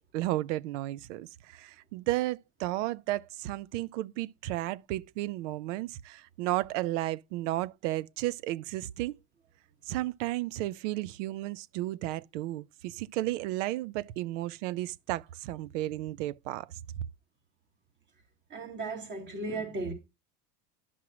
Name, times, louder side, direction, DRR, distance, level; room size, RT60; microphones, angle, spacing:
voice 1, 0.1-9.2 9.9-16.7, right 16 dB, 90° right, 0.6 m, -33 dB
voice 2, 18.5-19.9, right 3 dB, 30° right, 3.2 m, -35 dB
11.0 x 6.0 x 3.0 m
cardioid pair, 145°, 36 cm